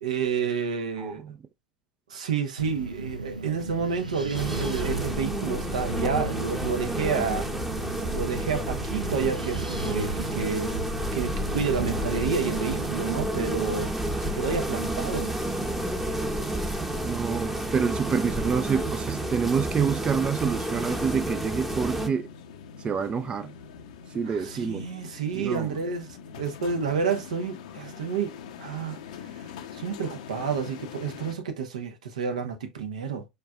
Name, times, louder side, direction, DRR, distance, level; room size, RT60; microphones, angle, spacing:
voice 1, 0.0-1.2 2.1-7.5 8.1-10.8 11.1-13.9 14.2-15.3 24.3-26.1 26.3-29.0 29.3-29.4 29.7-33.3, right 6 dB, 70° right, 0.9 m, -30 dB
voice 2, 1.0-1.4 11.9-12.0 17.0-22.3 22.8-23.5 24.1-24.9 25.3-25.7, right 6 dB, 25° right, 0.4 m, -27 dB
Wind, 2.6-13.3, right 2 dB, 85° right, 0.6 m, -36 dB
sound 1, 4.3-22.1, right 1 dB, 5° right, 0.8 m, -30 dB
sound 2, 18.1-31.4, left 7 dB, 60° left, 0.7 m, -44 dB
4.7 x 4.5 x 2.3 m
figure-of-eight pair, 75°, 4 cm